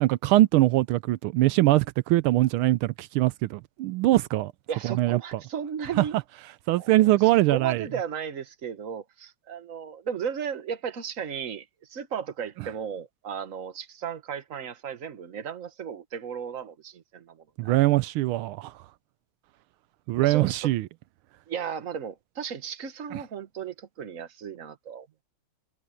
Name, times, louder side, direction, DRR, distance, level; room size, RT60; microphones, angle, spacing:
voice 1, 0.0-4.5 5.0-5.2 6.0-6.1 6.7-7.9 17.6-18.7 20.1-20.9 23.1-23.2, right 16 dB, 85° right, 1.4 m, -22 dB
voice 2, 4.7-6.2 6.8-6.9 7.2-17.7 20.2-20.7 21.5-25.1, right 7 dB, 40° right, 1.6 m, -35 dB
omnidirectional pair, 2.3 m